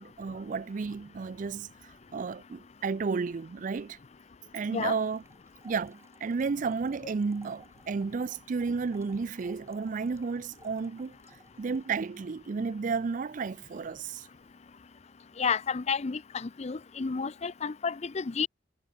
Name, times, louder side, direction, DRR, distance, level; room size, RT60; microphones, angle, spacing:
voice 1, 0.0-1.7 2.1-4.0 4.5-5.2 5.6-11.1 11.6-14.3, right 5 dB, 45° right, 0.4 m, -32 dB
sound 1, 4.8-12.1, right 2 dB, 15° right, 2.4 m, -60 dB
voice 2, 15.4-18.5, left 5 dB, 35° left, 0.5 m, -31 dB
head